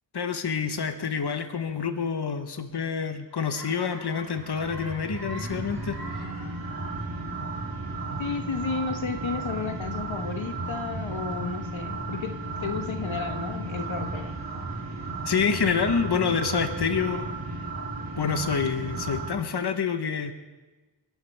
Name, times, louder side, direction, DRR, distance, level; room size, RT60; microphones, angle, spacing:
voice 1, 0.1-6.3 15.2-17.3 18.2-20.3, left 6 dB, 60° left, 8 dB, 1.0 m, -27 dB
sound 1, 3.4-19.3, right 3 dB, 50° right, 3.1 m, -34 dB
voice 2, 8.2-14.4, left 5 dB, 85° left, 6 dB, 1.1 m, -32 dB
28.5 x 11.5 x 3.4 m, 1.2 s
wide cardioid pair, 75°, 45 cm